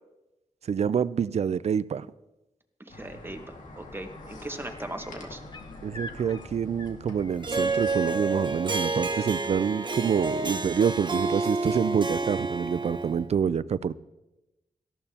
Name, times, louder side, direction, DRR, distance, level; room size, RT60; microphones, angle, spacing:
voice 1, 0.7-2.1 5.8-13.9, right 7 dB, 60° right, 17 dB, 0.4 m, -27 dB
voice 2, 2.8-3.4 3.8-5.4, right 1 dB, 15° right, 6 dB, 1.2 m, -38 dB
sound 1, 2.9-8.0, left 2 dB, 85° left, 1.9 m, -45 dB
sound 2, 3.7-3.8 4.1-8.1 9.8-9.9, left 2 dB, 35° left, 1.0 m, -47 dB
Harp, 7.4-13.2, right 3 dB, 40° right, 0.9 m, -29 dB
18.0 x 13.5 x 2.9 m, 1.0 s
wide cardioid pair, 90°, 13 cm